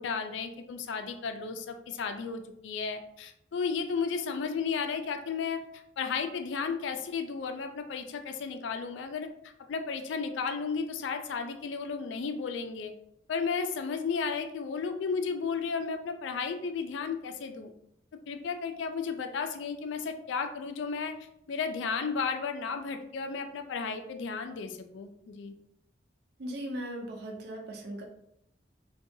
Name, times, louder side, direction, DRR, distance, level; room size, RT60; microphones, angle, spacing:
voice 1, 0.0-5.6 6.0-9.3 9.7-12.9 13.3-17.7 18.3-21.1 21.5-25.5, left 5 dB, 80° left, 6 dB, 0.3 m, -33 dB
voice 2, 26.4-28.0, right 1 dB, 60° right, 1 dB, 0.5 m, -38 dB
2.6 x 2.2 x 2.6 m, 0.74 s
head